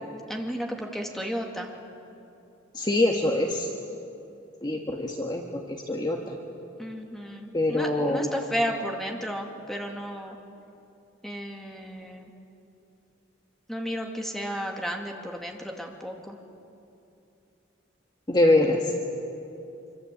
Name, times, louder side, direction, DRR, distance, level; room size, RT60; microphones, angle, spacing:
voice 1, 0.3-1.7 6.8-10.4 11.2-12.3 13.7-16.4, equal, ahead, 1 dB, 2.5 m, -33 dB
voice 2, 2.7-3.7 4.6-6.4 7.5-8.3 18.3-18.9, left 1 dB, 20° left, 1 dB, 1.7 m, -24 dB
26.0 x 25.0 x 8.5 m, 2.7 s
head